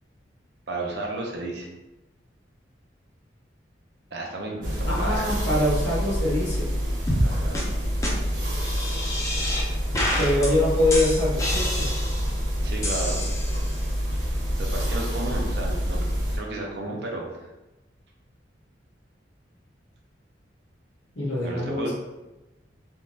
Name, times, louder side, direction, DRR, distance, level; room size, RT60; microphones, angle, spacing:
voice 1, 0.7-1.7 4.1-5.3 7.2-7.7 12.6-13.3 14.6-16.1 16.3-17.5 21.4-21.9, right 2 dB, 60° right, -1 dB, 0.6 m, -33 dB
sound 1, 4.6-16.4, equal, 80° right, 1.2 m, -27 dB
voice 2, 4.9-6.7 10.2-11.9 21.1-21.9, left 1 dB, 80° left, -7 dB, 1.1 m, -24 dB
sound 2, 7.1-7.3 7.5-7.6 8.0-8.1 8.6-9.6 9.9-10.5 10.9-12.3 12.8-13.8, left 1 dB, 15° left, 0.6 m, -28 dB
3.6 x 3.0 x 2.7 m, 1.0 s
head